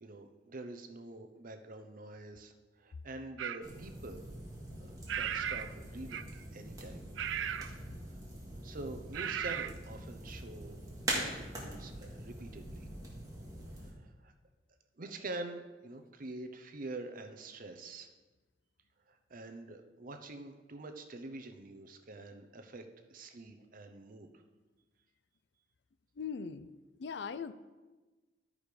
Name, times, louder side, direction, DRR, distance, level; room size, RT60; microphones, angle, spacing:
voice 1, 0.0-2.5 2.8-4.2 4.8-7.1 8.6-10.8 11.1-12.9 14.0-14.3 15.0-18.1 19.1-22.8 23.1-24.3, right 2 dB, 50° right, 7 dB, 0.7 m, -46 dB
sound 1, 3.4-3.7 5.1-5.7 6.1-6.4 7.2-7.8 9.1-9.7, right 9 dB, 85° right, 0.4 m, -36 dB
sound 2, 3.6-13.9, right 1 dB, 20° right, 1.9 m, -43 dB
voice 2, 26.2-26.7 27.0-27.5, left 6 dB, 65° left, 13 dB, 0.4 m, -39 dB
11.5 x 4.9 x 5.1 m, 1.2 s
head